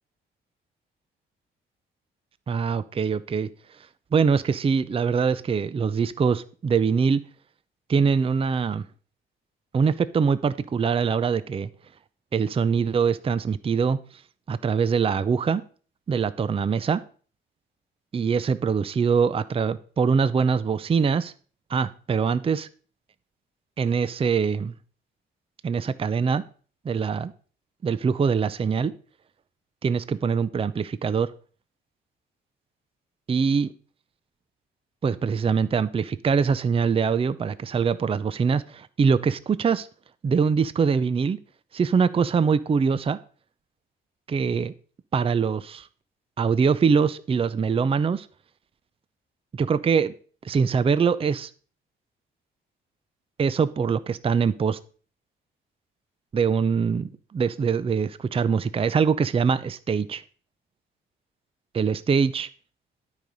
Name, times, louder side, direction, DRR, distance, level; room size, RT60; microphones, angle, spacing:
voice 1, 2.5-3.5 4.1-7.2 7.9-8.8 9.7-11.7 12.3-14.0 14.5-15.6 16.1-17.0 18.1-21.3 21.7-22.7 23.8-24.7 25.6-26.4 26.8-27.3 27.8-28.9 29.8-31.3 33.3-33.7 35.0-39.9 40.2-41.4 41.7-43.2 44.3-44.7 45.1-45.9 46.4-48.3 49.5-50.1 50.4-51.5 53.4-54.8 56.3-60.2 61.7-62.5, right 6 dB, 30° right, 16 dB, 0.5 m, -23 dB
12.0 x 5.0 x 5.3 m, 0.42 s
cardioid pair, 90°, 20 cm